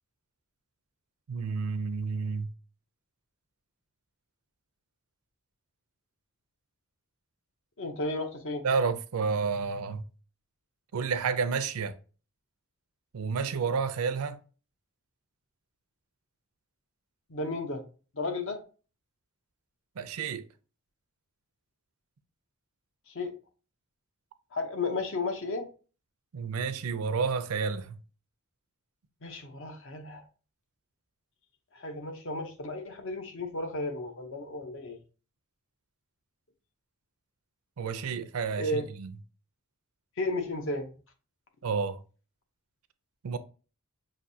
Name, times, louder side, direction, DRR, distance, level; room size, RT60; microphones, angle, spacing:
voice 1, 1.3-2.5 8.6-10.0 10.9-12.0 13.1-14.4 20.0-20.5 26.3-28.0 37.8-39.1 41.6-42.0 43.2-43.4, right 5 dB, 75° right, 0.5 m, -30 dB
voice 2, 7.8-8.6 17.3-17.8 18.1-18.6 23.1-23.3 24.5-25.7 29.2-30.2 31.7-35.0 38.6-38.8 40.2-40.9, left 2 dB, 60° left, 0.8 m, -33 dB
5.8 x 2.6 x 2.7 m
head